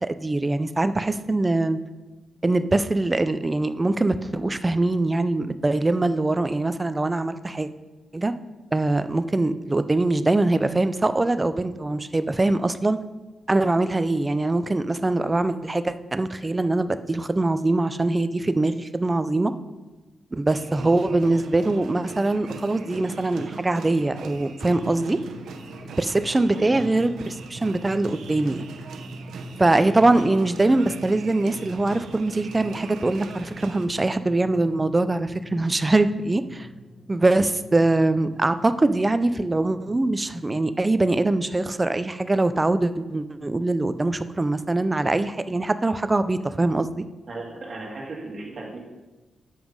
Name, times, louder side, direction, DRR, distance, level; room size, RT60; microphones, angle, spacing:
voice 1, 0.0-1.8 2.4-7.7 8.1-8.3 8.7-13.0 13.5-19.5 20.3-25.2 26.0-28.6 29.6-36.7 37.1-47.0, right 2 dB, 15° right, 12 dB, 0.4 m, -23 dB
sound 1, 20.5-33.9, right 5 dB, 85° right, 0.7 m, -41 dB
Drum, 24.7-40.9, equal, 30° left, 1.5 m, -45 dB
voice 2, 47.3-48.8, right 2 dB, 35° right, -2 dB, 2.0 m, -36 dB
7.1 x 6.1 x 5.2 m, 1.1 s
wide cardioid pair, 150°, 0 cm